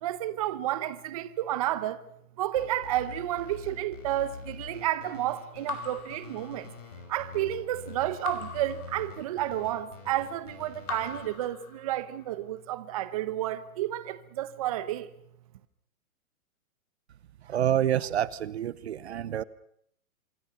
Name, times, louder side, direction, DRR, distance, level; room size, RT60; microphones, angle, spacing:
voice 1, 0.0-2.0 2.4-6.7 7.1-15.1, right 13 dB, 25° right, 0.9 m, -31 dB
sound 1, 2.5-11.3, left 5 dB, 60° left, 7.3 m, -46 dB
Raindrop / Drip, 5.7-7.0 8.2-9.6 10.8-12.2, left 5 dB, 80° left, 3.8 m, -41 dB
voice 2, 17.5-19.4, right 11 dB, 50° right, 0.9 m, -27 dB
26.5 x 23.5 x 5.8 m
hypercardioid pair, 165°, 42 cm